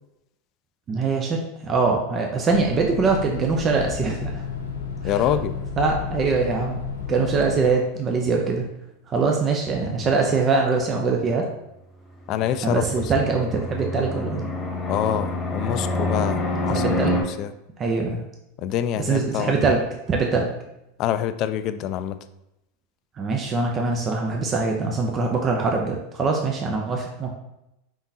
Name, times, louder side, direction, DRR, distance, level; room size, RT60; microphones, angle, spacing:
voice 1, 0.9-4.4 5.0-5.2 5.8-6.8 7.1-8.7 9.1-11.5 12.6-14.5 16.7-17.2 17.8-18.2 19.0-19.8 20.1-20.5 23.2-27.3, right 4 dB, 30° right, 1 dB, 0.6 m, -23 dB
sound 1, 2.5-7.7, left 5 dB, 90° left, 0.7 m, -32 dB
voice 2, 5.0-5.6 12.3-12.8 14.9-17.5 18.6-19.6 21.0-22.2, left 10 dB, 50° left, 11 dB, 0.3 m, -26 dB
Fixed-wing aircraft airplane, 12.3-17.2, left 1 dB, 25° left, 1.1 m, -27 dB
4.7 x 3.6 x 2.7 m, 0.87 s
hypercardioid pair, 100°, 0 cm